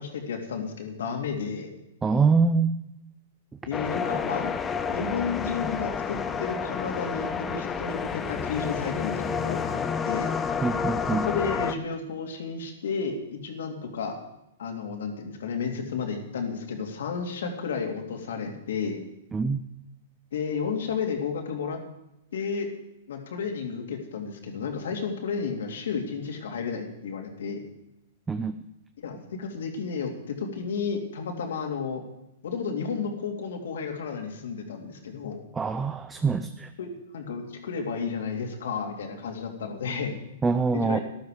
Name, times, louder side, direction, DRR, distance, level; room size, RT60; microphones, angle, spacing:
voice 1, 0.0-1.7 3.7-4.5 4.9-9.8 10.0-10.3 11.1-14.2 14.6-19.0 20.3-21.8 22.3-22.7 23.1-27.6 29.0-32.0 32.4-35.4 36.8-40.2 40.7-41.0, left 5 dB, 70° left, 3 dB, 2.8 m, -32 dB
voice 2, 2.0-2.7 10.6-11.2 19.3-19.6 28.3-28.5 35.6-36.7 40.4-41.0, right 4 dB, 15° right, 9 dB, 0.7 m, -24 dB
sound 1, 3.7-11.8, left 6 dB, 20° left, 0.9 m, -30 dB
13.5 x 12.0 x 5.0 m, 0.87 s
hypercardioid pair, 115°, 0 cm